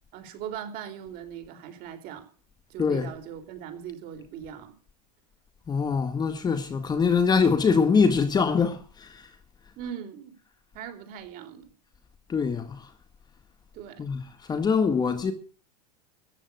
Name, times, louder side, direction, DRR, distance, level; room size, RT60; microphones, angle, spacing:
voice 1, 0.1-2.3 2.7-4.8 9.8-10.4 10.7-11.7 13.7-14.1, right 9 dB, 45° right, 4.0 m, -40 dB
voice 2, 2.8-3.1 5.7-9.3 12.3-12.9 14.0-14.2 14.5-15.3, left 5 dB, 20° left, 1.9 m, -23 dB
14.0 x 9.1 x 8.1 m
supercardioid pair, 130°, 20 cm